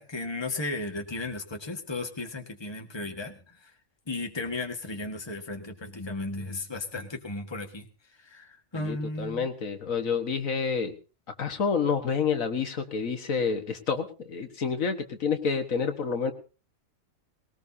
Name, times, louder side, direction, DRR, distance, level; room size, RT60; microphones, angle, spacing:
voice 1, 0.0-3.7 4.1-9.5, left 2 dB, 20° left, 4 dB, 1.6 m, -35 dB
voice 2, 8.7-10.9 11.4-16.3, left 5 dB, 75° left, 7 dB, 1.8 m, -28 dB
20.0 x 18.5 x 2.8 m, 0.34 s
omnidirectional pair, 1.4 m